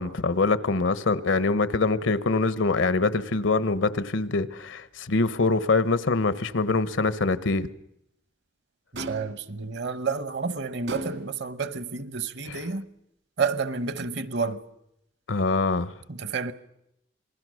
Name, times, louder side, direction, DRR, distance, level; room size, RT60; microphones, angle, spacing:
voice 1, 0.0-7.7 12.5-12.6 15.3-15.9, left 3 dB, 85° left, 1.0 m, -24 dB
voice 2, 8.9-12.8 13.4-14.6 16.1-16.5, right 5 dB, 60° right, 1.0 m, -30 dB
sound 1, 9.0-9.5 10.9-11.5, right 1 dB, 75° right, 2.4 m, -36 dB
27.5 x 20.5 x 6.4 m
head